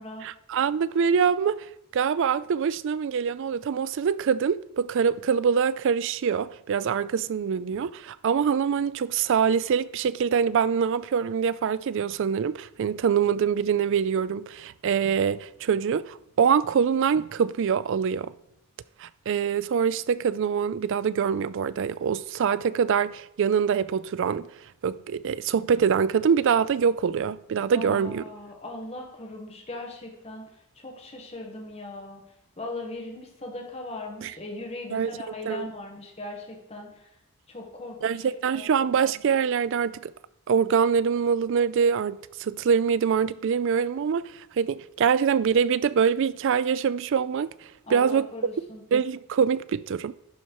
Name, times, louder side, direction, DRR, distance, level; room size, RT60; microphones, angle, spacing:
voice 1, 0.2-1.7 1.9-18.3 19.0-24.5 24.8-28.2 34.2-34.3 34.9-35.1 35.5-35.7 38.0-40.1 40.5-47.5 47.9-48.3 48.9-50.1, right 7 dB, 60° right, 0.3 m, -24 dB
voice 2, 27.7-30.4 30.8-32.2 32.6-37.1 37.5-38.7 47.8-48.8, left 2 dB, 30° left, 1.6 m, -39 dB
11.0 x 4.4 x 4.7 m
head